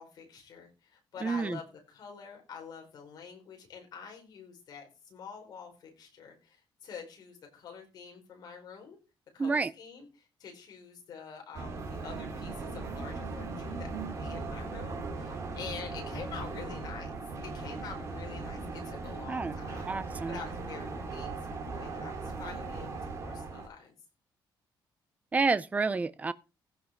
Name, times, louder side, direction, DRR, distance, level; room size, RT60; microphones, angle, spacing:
voice 1, 0.0-9.0 9.3-17.1 17.4-19.9 20.3-21.4 21.7-23.9, left 6 dB, 50° left, 4.8 m, -46 dB
voice 2, 1.2-1.6 9.4-9.7 19.3-19.5 19.9-20.4 25.3-26.3, right 4 dB, 15° right, 0.5 m, -29 dB
sound 1, 11.5-23.7, right 3 dB, 35° right, 2.6 m, -38 dB
16.0 x 5.9 x 4.5 m
cardioid pair, 175°, 8 cm